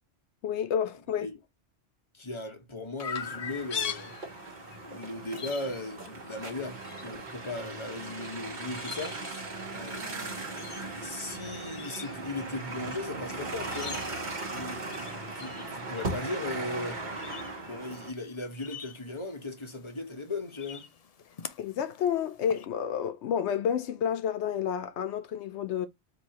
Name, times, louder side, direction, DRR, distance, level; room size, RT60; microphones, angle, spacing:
voice 1, 0.4-1.3 21.6-25.9, left 8 dB, 85° left, 0.9 m, -30 dB
voice 2, 2.1-4.1 4.8-10.5 11.0-14.9 15.3-17.0 17.6-20.9, left 2 dB, 25° left, 1.3 m, -38 dB
Chirp tweet, 3.0-22.6, left 7 dB, 45° left, 0.5 m, -44 dB
sound 1, 3.2-18.1, right 2 dB, 45° right, 1.4 m, -38 dB
4.5 x 3.0 x 2.9 m
omnidirectional pair, 1.1 m